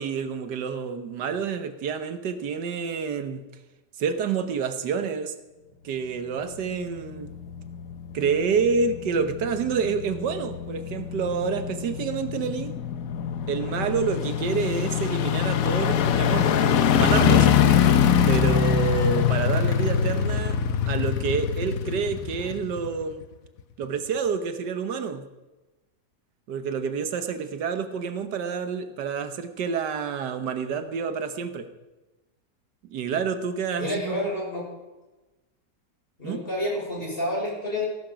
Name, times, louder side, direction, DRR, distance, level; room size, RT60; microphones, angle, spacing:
voice 1, 0.0-3.4 4.0-5.3 5.8-7.3 8.1-12.7 13.5-17.5 18.3-20.6 20.9-23.2 23.8-25.2 26.5-31.7 32.9-34.2 36.2-36.4, right 6 dB, 85° right, 9 dB, 1.6 m, -28 dB
sound 1, 6.7-23.2 23.6-23.7, left 8 dB, 60° left, 1.1 m, -24 dB
voice 2, 33.8-34.7 36.2-37.9, left 1 dB, 30° left, -3 dB, 6.0 m, -29 dB
18.0 x 12.0 x 5.1 m, 1.1 s
omnidirectional pair, 1.8 m